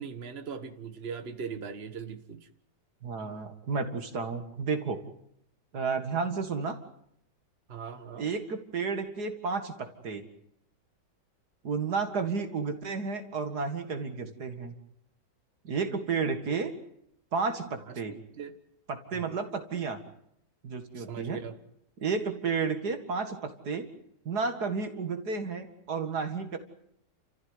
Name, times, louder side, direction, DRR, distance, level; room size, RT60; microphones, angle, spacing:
voice 1, 0.0-2.5 7.7-8.3 18.1-18.6 19.1-19.2 21.0-21.5, right 6 dB, 35° right, 9 dB, 1.7 m, -40 dB
voice 2, 3.0-5.0 5.7-6.8 8.2-10.2 11.6-14.7 15.6-16.7 17.3-18.2 18.9-20.0 20.6-21.4 22.0-23.9 24.3-26.6, right 5 dB, 65° right, 7 dB, 2.5 m, -32 dB
30.0 x 15.0 x 9.6 m, 0.75 s
omnidirectional pair, 1.9 m